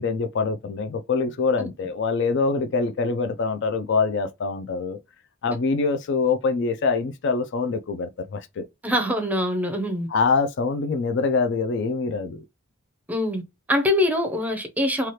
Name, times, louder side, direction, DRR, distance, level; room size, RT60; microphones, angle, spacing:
voice 1, 0.0-5.0 5.4-8.6 10.1-12.4, left 4 dB, 55° left, 0.4 m, -24 dB
voice 2, 8.8-10.1 13.1-13.4 13.7-15.1, left 1 dB, 5° right, 0.6 m, -23 dB
2.9 x 2.4 x 3.1 m
head